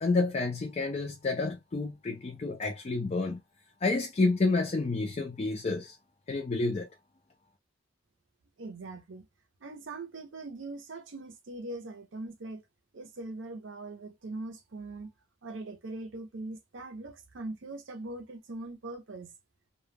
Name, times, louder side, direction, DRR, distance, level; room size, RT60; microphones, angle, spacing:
voice 1, 0.0-3.4 3.8-6.0 6.3-6.9, left 3 dB, 35° left, 0.4 m, -29 dB
voice 2, 8.6-9.3 9.6-12.6 12.9-15.1 15.4-19.3, right 2 dB, 70° right, 0.6 m, -41 dB
2.2 x 2.2 x 3.3 m
head